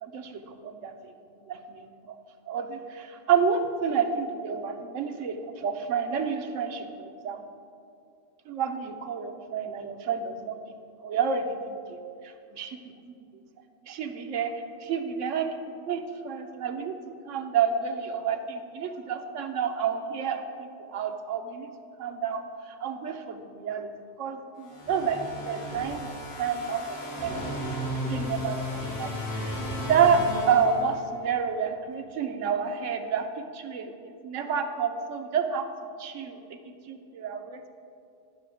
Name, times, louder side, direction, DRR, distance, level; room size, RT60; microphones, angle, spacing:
voice 1, 0.0-1.1 1.4-2.2 2.5-7.4 8.5-10.6 11.0-12.0 12.2-12.8 13.1-13.2 13.8-14.5 14.8-16.9 17.3-21.7 22.0-23.9 24.2-25.2 25.5-26.1 26.4-27.5 28.1-29.6 29.9-33.3 33.5-33.9 34.2-35.7 36.0-36.6 36.9-37.7, right 6 dB, 80° right, 6 dB, 1.1 m, -29 dB
sound 1, 24.7-31.3, left 1 dB, 55° left, 1.7 m, -34 dB
11.0 x 5.8 x 4.9 m, 2.5 s
omnidirectional pair, 1.3 m